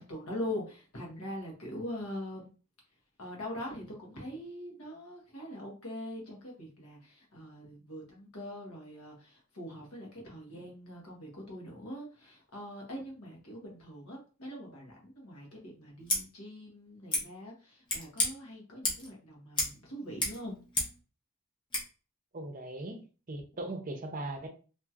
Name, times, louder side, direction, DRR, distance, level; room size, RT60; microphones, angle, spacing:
voice 1, 0.0-2.5 3.2-20.6, left 1 dB, 85° left, 1.2 m, -42 dB
Scissors, 16.0-16.2 17.1-17.2 17.8-18.3 18.8-19.1 19.5-19.8 20.0-21.0 21.7-21.8, left 2 dB, 20° left, 0.8 m, -32 dB
voice 2, 22.3-24.5, right 2 dB, 40° right, 0.6 m, -39 dB
2.9 x 2.8 x 2.4 m
head